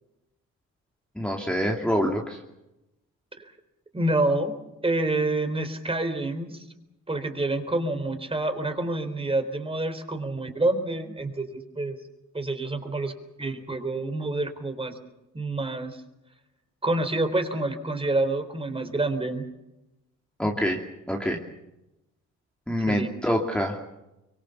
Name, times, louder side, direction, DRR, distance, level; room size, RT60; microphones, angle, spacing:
voice 1, 1.2-2.4 20.4-20.8 21.1-21.4 22.7-23.8, equal, 5° left, 0 dB, 2.6 m, -26 dB
voice 2, 3.9-4.5 4.8-6.7 7.1-12.0 12.3-13.1 13.4-15.0 15.3-16.0 16.8-19.4 22.9-23.1, right 2 dB, 20° right, 8 dB, 3.9 m, -27 dB
24.5 x 23.5 x 7.2 m, 0.93 s
cardioid pair, 90°, 30 cm